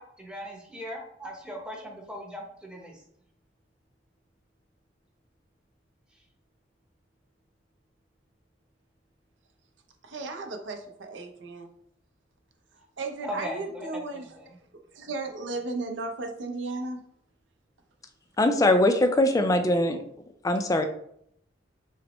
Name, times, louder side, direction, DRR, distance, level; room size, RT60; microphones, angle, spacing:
voice 1, 0.0-3.0 13.2-14.5, equal, 5° right, 0 dB, 0.7 m, -39 dB
voice 2, 10.0-11.7 13.0-14.2 14.9-17.0, right 3 dB, 80° right, 4 dB, 0.6 m, -35 dB
voice 3, 18.4-20.0 20.4-20.9, left 1 dB, 20° left, 7 dB, 0.3 m, -21 dB
5.9 x 2.1 x 3.0 m, 0.72 s
head